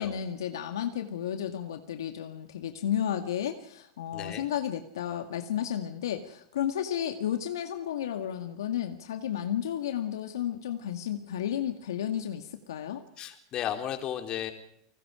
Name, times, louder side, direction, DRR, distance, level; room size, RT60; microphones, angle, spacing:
voice 1, 0.0-13.0, left 10 dB, 80° left, 6 dB, 2.0 m, -32 dB
voice 2, 4.1-4.4 13.2-14.5, left 10 dB, 40° left, 6 dB, 4.1 m, -34 dB
30.0 x 20.0 x 5.1 m, 0.71 s
hypercardioid pair, 95°, 2 cm